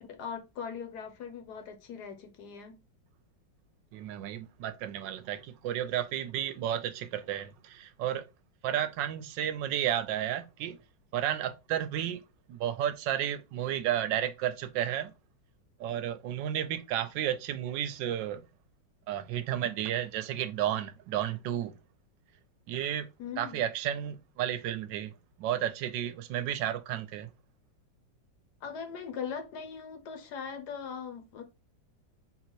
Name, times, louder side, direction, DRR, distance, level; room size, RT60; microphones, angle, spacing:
voice 1, 0.1-2.8 23.2-23.6 28.6-31.4, left 6 dB, 60° left, 1.3 m, -40 dB
voice 2, 3.9-8.3 8.6-10.8 11.1-12.2 12.5-15.1 15.8-18.4 19.1-21.8 22.7-23.1 23.4-27.3, right 11 dB, 75° right, 1.2 m, -32 dB
3.9 x 2.8 x 4.4 m
omnidirectional pair, 2.1 m